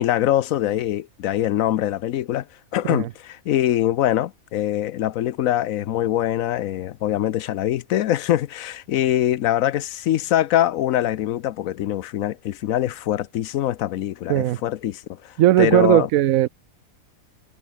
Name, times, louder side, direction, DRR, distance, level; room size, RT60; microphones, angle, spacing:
voice 1, 0.0-2.4 2.7-16.1, left 12 dB, 75° left, 1.1 m, -23 dB
voice 2, 15.4-16.5, right 14 dB, 75° right, 1.0 m, -17 dB
omnidirectional pair, 1.5 m